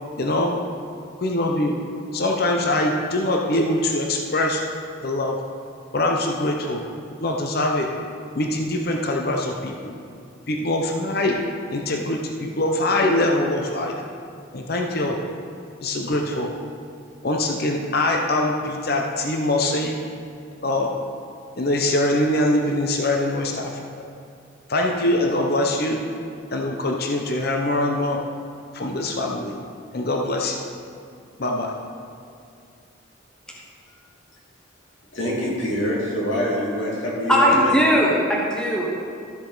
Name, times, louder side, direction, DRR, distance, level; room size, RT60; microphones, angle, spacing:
voice 1, 0.2-0.6 1.2-1.8 2.1-4.6 5.0-5.4 5.9-6.8 7.2-7.9 8.3-9.9 10.5-11.4 11.7-14.0 14.5-15.2 15.8-16.5 17.2-20.0 20.6-20.9 21.6-23.7 24.7-26.0 26.5-28.2 28.7-29.6 29.9-30.6 31.4-31.7, left 1 dB, 50° left, 1 dB, 0.7 m, -23 dB
voice 2, 35.1-37.8, equal, 75° left, -5 dB, 2.5 m, -25 dB
voice 3, 37.3-38.9, equal, 5° left, -4 dB, 1.0 m, -18 dB
13.0 x 7.3 x 4.0 m, 2.3 s
head